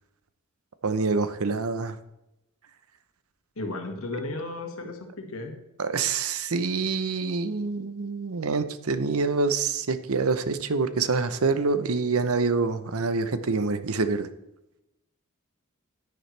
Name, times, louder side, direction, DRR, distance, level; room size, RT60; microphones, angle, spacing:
voice 1, 0.8-2.0 5.8-14.3, right 4 dB, 90° right, 12 dB, 0.8 m, -26 dB
voice 2, 3.6-5.5, left 2 dB, 80° left, 4 dB, 1.9 m, -34 dB
10.0 x 9.8 x 3.3 m, 0.92 s
head